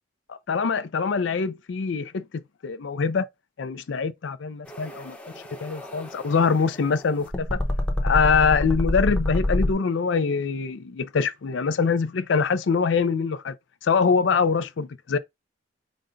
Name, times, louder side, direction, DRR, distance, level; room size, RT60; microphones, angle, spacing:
voice 1, 0.3-2.2 2.6-3.2 3.6-5.2 5.6-7.6 8.0-13.5 13.8-15.2, left 5 dB, 70° left, 0.5 m, -24 dB
sound 1, 4.7-9.7, left 1 dB, 5° left, 0.8 m, -27 dB
5.2 x 2.2 x 3.8 m
head